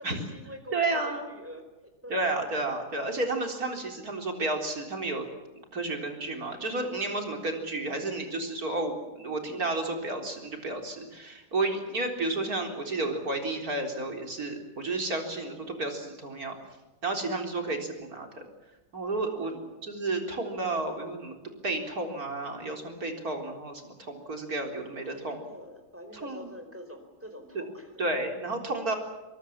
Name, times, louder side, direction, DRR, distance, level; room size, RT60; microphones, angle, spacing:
voice 1, 0.1-1.6 2.0-2.3 7.9-8.2 9.4-9.6 15.5-15.6 19.4-19.8 25.0-28.0, equal, 5° right, 6 dB, 4.5 m, -46 dB
voice 2, 0.7-1.3 2.1-5.3 5.7-16.6 17.0-18.3 18.9-19.5 19.8-21.3 21.6-25.4 26.2-26.5 27.5-27.6 28.0-29.0, right 2 dB, 45° right, 3 dB, 4.3 m, -31 dB
24.0 x 22.0 x 7.3 m, 1.1 s
omnidirectional pair, 2.2 m